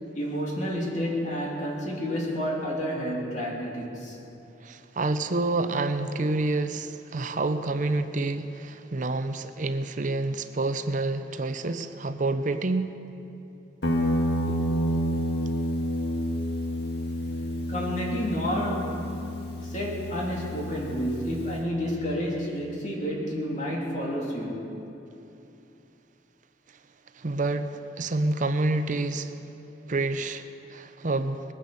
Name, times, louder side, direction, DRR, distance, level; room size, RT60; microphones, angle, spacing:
voice 1, 0.1-4.2 14.5-14.7 17.7-19.2 19.6-24.6, equal, 40° left, 2.9 m, -30 dB
voice 2, 4.6-12.9 27.2-29.4 29.9-31.4, right 2 dB, 45° right, 0.7 m, -28 dB
Guitar, 13.8-21.7, equal, 65° left, 1.8 m, -29 dB
20.0 x 10.0 x 6.9 m
head